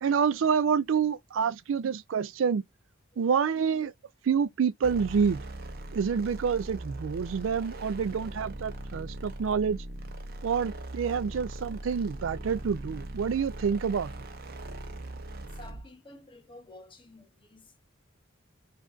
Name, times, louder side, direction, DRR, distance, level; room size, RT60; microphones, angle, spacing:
voice 1, 0.0-2.6 3.2-3.9 4.2-5.4 5.9-9.8 10.4-14.1, right 6 dB, 75° right, 0.4 m, -27 dB
sound 1, 4.8-15.9, right 1 dB, 50° right, 0.8 m, -40 dB
voice 2, 15.4-17.8, left 1 dB, 25° left, 0.9 m, -51 dB
5.2 x 2.5 x 2.5 m
head